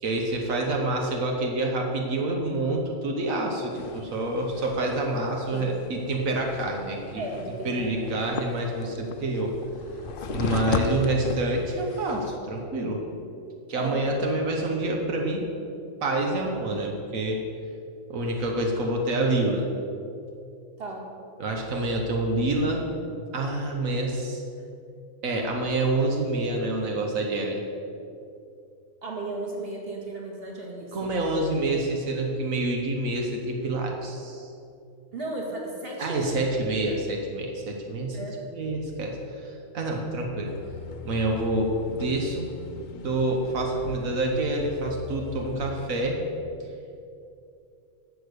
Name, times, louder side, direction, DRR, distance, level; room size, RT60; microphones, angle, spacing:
voice 1, 0.0-7.2 7.5-9.5 10.3-13.0 13.7-15.5 16.0-17.4 18.1-19.7 21.4-22.8 23.3-24.4 25.2-27.6 30.9-34.5 36.0-38.2 38.5-40.5 41.0-42.5 42.9-46.2, right 2 dB, 90° right, 1 dB, 1.5 m, -27 dB
sound 1, 3.7-12.4, left 6 dB, 55° left, 0.7 m, -36 dB
voice 2, 7.2-8.2 10.2-10.5 13.7-14.1 20.8-21.1 29.0-31.2 35.1-36.5 38.1-38.3, right 2 dB, 45° right, -2 dB, 2.2 m, -35 dB
sound 2, 40.4-46.0, left 5 dB, 80° left, 1.2 m, -40 dB
11.5 x 7.0 x 6.6 m, 2.6 s
omnidirectional pair, 1.4 m